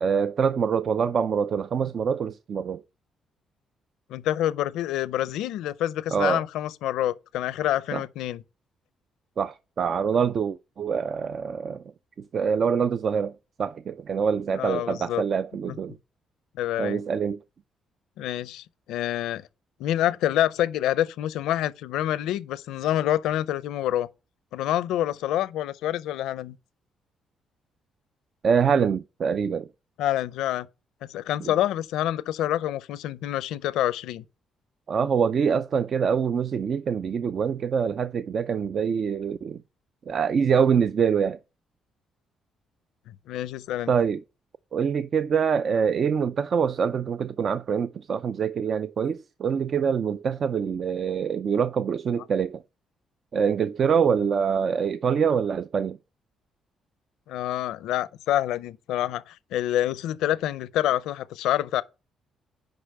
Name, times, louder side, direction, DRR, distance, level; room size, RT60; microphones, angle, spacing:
voice 1, 0.0-2.8 6.1-6.4 7.9-8.0 9.4-11.8 12.3-13.3 13.6-16.0 16.8-17.4 28.4-29.7 31.4-31.5 34.9-39.6 40.1-41.4 43.9-44.2 44.7-52.6 53.3-56.0, right 6 dB, 55° right, 0.4 m, -25 dB
voice 2, 4.1-8.4 14.6-15.2 16.6-17.0 18.2-19.5 19.8-24.1 24.5-26.6 30.0-30.7 31.0-34.2 43.1-43.9 57.3-61.8, left 12 dB, 90° left, 0.5 m, -27 dB
6.6 x 5.2 x 6.5 m
cardioid pair, 90°, 0 cm